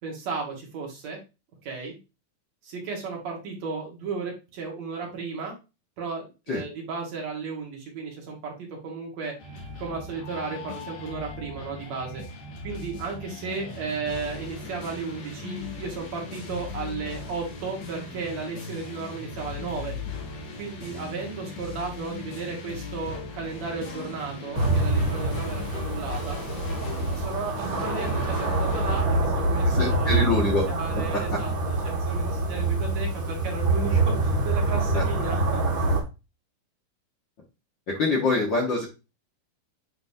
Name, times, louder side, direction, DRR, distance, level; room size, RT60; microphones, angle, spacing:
voice 1, 0.0-1.2 1.6-2.0 2.6-5.6 6.0-9.3 9.8-12.2 12.6-19.9 20.6-26.4 27.2-30.3 30.7-35.6, right 4 dB, 60° right, 0 dB, 2.9 m, -34 dB
sound 1, 9.4-29.0, left 3 dB, 90° left, 3.1 m, -38 dB
sound 2, 24.5-36.0, right 2 dB, 30° right, 2.0 m, -25 dB
voice 2, 29.6-30.7 31.1-31.4 34.9-35.0 37.9-38.9, left 3 dB, 45° left, -1 dB, 1.7 m, -25 dB
9.2 x 4.0 x 2.7 m, 0.27 s
omnidirectional pair, 3.5 m